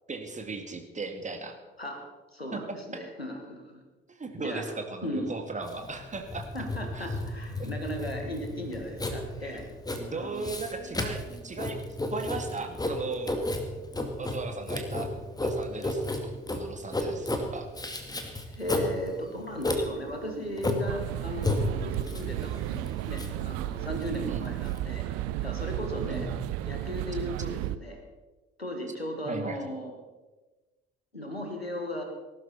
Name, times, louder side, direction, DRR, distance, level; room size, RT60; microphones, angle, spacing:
voice 1, 0.1-1.6 2.5-2.8 4.1-6.5 6.9-7.1 7.6-7.7 9.4-9.6 10.0-11.8 12.1-13.4 14.2-15.1 15.4-17.7 24.3-24.4 26.1-26.5 29.3-29.6, right 3 dB, 25° right, 5 dB, 2.1 m, -37 dB
voice 2, 2.3-3.8 4.4-4.6 5.0-5.3 6.5-9.7 10.1-10.5 18.5-25.1 25.4-26.3 26.6-28.0 28.6-29.9 31.1-32.0, equal, 90° left, 3 dB, 1.5 m, -36 dB
Writing, 5.6-24.8, left 1 dB, 15° left, 2.1 m, -33 dB
sound 1, 20.9-27.8, right 14 dB, 55° right, 0.6 m, -33 dB
19.0 x 12.0 x 4.2 m, 1.2 s
figure-of-eight pair, 50°, 30 cm